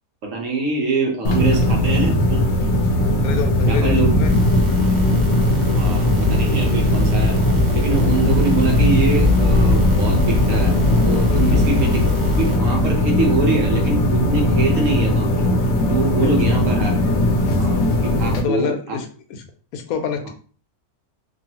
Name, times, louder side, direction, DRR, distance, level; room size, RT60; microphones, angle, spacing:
voice 1, 0.2-2.4 3.7-4.1 5.7-7.4 7.7-10.8 11.1-12.0 12.4-15.5 15.9-19.0, right 3 dB, 65° right, 0 dB, 1.1 m, -24 dB
sound 1, 1.2-18.4, left 1 dB, 65° left, 0.8 m, -18 dB
sound 2, 2.0-12.0, right 1 dB, 40° right, 0.6 m, -32 dB
voice 2, 3.2-4.3 11.3-11.6 16.2-16.6 18.3-19.4 19.7-20.3, left 7 dB, 85° left, 6 dB, 1.1 m, -27 dB
sound 3, 4.2-12.6, left 6 dB, 80° right, 1.2 m, -26 dB
3.1 x 2.3 x 2.8 m, 0.40 s
omnidirectional pair, 1.5 m